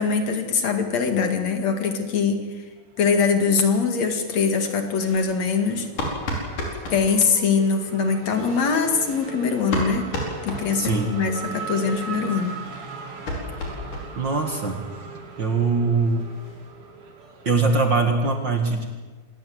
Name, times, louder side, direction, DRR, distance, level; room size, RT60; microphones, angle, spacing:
voice 1, 0.0-2.4 3.0-5.9 6.9-10.1 10.4-12.5, left 5 dB, 60° left, 5 dB, 3.2 m, -22 dB
Race car auto racing / Accelerating revving vroom, 3.1-4.2 4.5-18.2, right 4 dB, 80° right, 4.1 m, -39 dB
sound 1, 5.0-7.0 8.2-11.3 11.6-11.7 11.9-12.0 12.3-14.4 14.6-14.7 15.1-15.2 15.5-15.6 15.8-16.7, left 1 dB, 90° left, 6.2 m, -33 dB
voice 2, 10.7-11.1 14.2-14.9 15.4-16.3 17.5-18.8, right 3 dB, 40° right, 5 dB, 2.2 m, -22 dB
26.0 x 19.5 x 7.9 m, 1.3 s
omnidirectional pair, 3.6 m